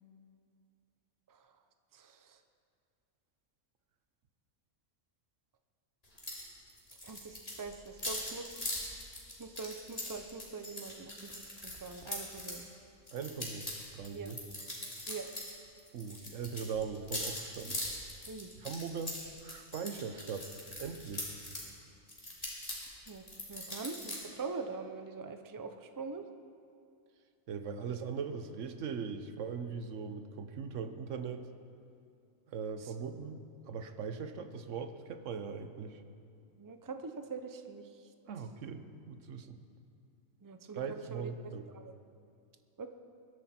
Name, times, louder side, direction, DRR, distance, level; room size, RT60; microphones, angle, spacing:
voice 1, 1.9-2.4 7.0-8.5 9.4-12.6 14.1-14.3 15.1-15.3 18.3-18.5 23.1-23.2 23.5-26.2 32.8-32.9 36.6-37.9 40.4-41.3 41.7-41.9 42.8-42.9, right 4 dB, 25° right, 7 dB, 0.4 m, -43 dB
sound 1, 6.2-6.4 6.7-12.6 13.1-15.5 15.8-21.7 22.1-24.2, left 1 dB, 25° left, 3.1 m, -41 dB
voice 2, 13.1-13.7 13.9-14.4 15.9-17.8 18.6-20.5 20.8-21.3 27.5-31.5 32.5-33.4 33.7-36.0 38.3-39.6 40.7-41.7, right 6 dB, 60° right, 8 dB, 1.2 m, -40 dB
21.5 x 12.5 x 4.4 m, 2.4 s
omnidirectional pair, 1.5 m